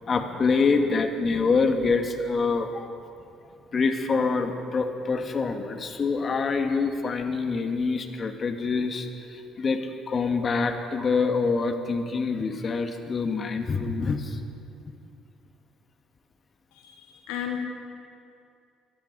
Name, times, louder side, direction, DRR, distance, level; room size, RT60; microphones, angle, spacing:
voice 1, 0.1-2.9 3.7-14.4 14.8-14.9, left 4 dB, 45° left, 6 dB, 1.5 m, -26 dB
voice 2, 16.7-17.7, left 9 dB, 80° left, 4 dB, 1.1 m, -34 dB
22.0 x 13.5 x 4.1 m, 2.6 s
hypercardioid pair, 60°, 0 cm